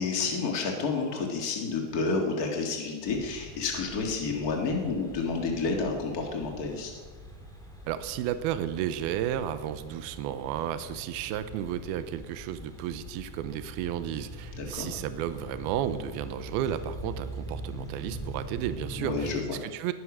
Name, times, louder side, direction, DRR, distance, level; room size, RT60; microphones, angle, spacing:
voice 1, 0.0-6.9 14.6-14.9 19.0-19.4, left 4 dB, 75° left, 2 dB, 0.8 m, -30 dB
sound 1, 3.0-19.4, right 1 dB, 5° left, 0.6 m, -43 dB
voice 2, 7.9-19.9, right 11 dB, 80° right, 12 dB, 2.5 m, -33 dB
20.5 x 10.0 x 6.2 m, 1.5 s
omnidirectional pair, 4.6 m